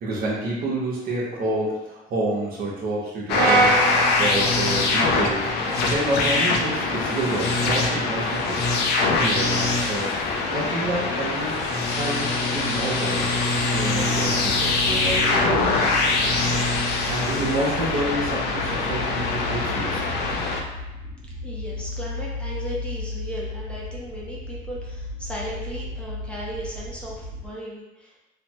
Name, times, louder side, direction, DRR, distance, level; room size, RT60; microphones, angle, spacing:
voice 1, 0.0-5.5 5.9-8.7 9.2-10.2 10.5-16.6 17.1-20.1, right 2 dB, 60° right, -5 dB, 0.9 m, -29 dB
sound 1, 3.3-20.6, left 3 dB, 75° left, 0.5 m, -23 dB
Brass instrument, 3.3-7.6, right 4 dB, 75° right, 0.5 m, -28 dB
sound 2, 14.3-27.5, left 2 dB, 20° right, 1.2 m, -35 dB
voice 2, 21.4-28.2, equal, 5° left, -6 dB, 0.6 m, -36 dB
3.2 x 2.0 x 2.9 m, 1.0 s
cardioid pair, 110°, 17 cm